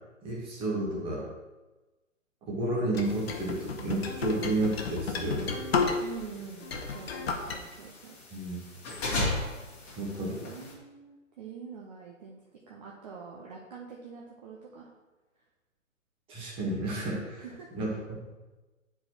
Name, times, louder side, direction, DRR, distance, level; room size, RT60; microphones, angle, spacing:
voice 1, 0.2-1.3 2.5-5.6 8.3-8.6 10.0-10.4 16.3-17.4 17.7-17.9, right 2 dB, 15° right, -4 dB, 1.2 m, -31 dB
sound 1, 2.9-6.3 6.6-7.6, left 5 dB, 50° left, 0.9 m, -32 dB
sound 2, 3.0-10.7, left 2 dB, 20° left, 1.7 m, -38 dB
voice 2, 6.0-8.2 10.2-12.4 12.7-14.9 17.4-17.8, right 6 dB, 30° right, -3 dB, 0.7 m, -45 dB
9.2 x 4.6 x 2.9 m, 1.2 s
figure-of-eight pair, 130°, 40 cm